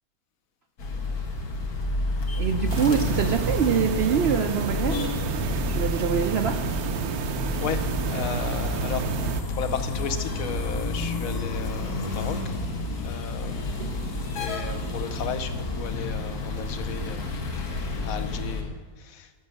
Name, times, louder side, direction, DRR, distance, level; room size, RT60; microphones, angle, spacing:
sound 1, 0.8-18.6, left 2 dB, 85° left, 1.7 m, -30 dB
voice 1, 2.3-5.0 5.7-6.7 13.8-13.9, right 7 dB, 65° right, 6 dB, 0.6 m, -25 dB
sound 2, 2.7-9.4, right 6 dB, 80° right, 1.2 m, -30 dB
voice 2, 7.6-9.1 9.5-12.6 13.0-14.0 14.3-17.3 17.6-19.3, left 8 dB, 70° left, 9 dB, 1.1 m, -35 dB
12.0 x 5.7 x 6.4 m, 1.5 s
omnidirectional pair, 1.6 m